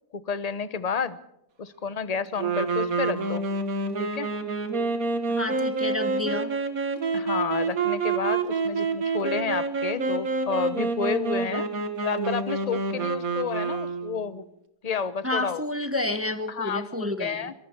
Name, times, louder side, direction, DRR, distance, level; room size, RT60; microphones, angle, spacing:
voice 1, 0.1-1.2 1.6-3.4 4.0-4.3 7.1-11.7 12.0-14.5 14.8-15.6 16.5-17.5, left 6 dB, 30° left, 14 dB, 0.8 m, -30 dB
sound 1, 2.4-14.2, right 4 dB, 60° right, 2.3 m, -28 dB
voice 2, 5.3-6.5 7.5-7.6 15.2-17.5, left 2 dB, 10° right, 9 dB, 1.0 m, -30 dB
25.5 x 23.5 x 4.6 m, 0.84 s
omnidirectional pair, 1.7 m